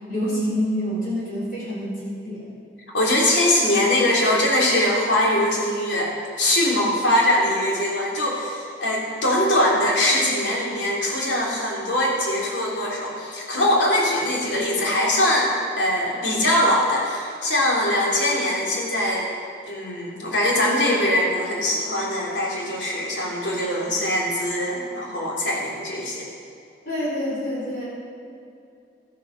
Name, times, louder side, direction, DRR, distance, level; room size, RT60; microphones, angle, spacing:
voice 1, 0.1-2.4 26.9-27.8, equal, 50° left, -7 dB, 4.0 m, -27 dB
voice 2, 2.9-19.3 19.7-26.3, left 1 dB, 90° left, -3 dB, 3.3 m, -22 dB
13.5 x 9.5 x 6.6 m, 2.6 s
head